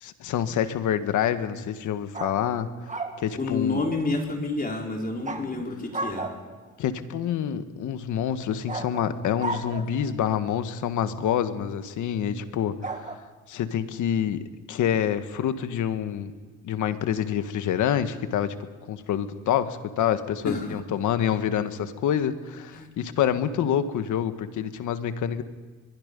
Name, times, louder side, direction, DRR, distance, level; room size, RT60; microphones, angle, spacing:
voice 1, 0.0-2.7 3.2-3.8 6.8-13.2 13.5-16.3 16.6-18.5 18.9-25.4, left 9 dB, 80° left, 10 dB, 1.5 m, -27 dB
sound 1, 2.1-3.2 5.2-5.5 5.9-6.7 8.7-10.1 12.8-13.2, right 3 dB, 25° right, 2.2 m, -34 dB
voice 2, 3.3-6.3 20.4-20.8 22.7-22.9, left 3 dB, 30° left, 0 dB, 4.2 m, -29 dB
23.5 x 22.0 x 5.3 m, 1.3 s
cardioid pair, 90°, 30 cm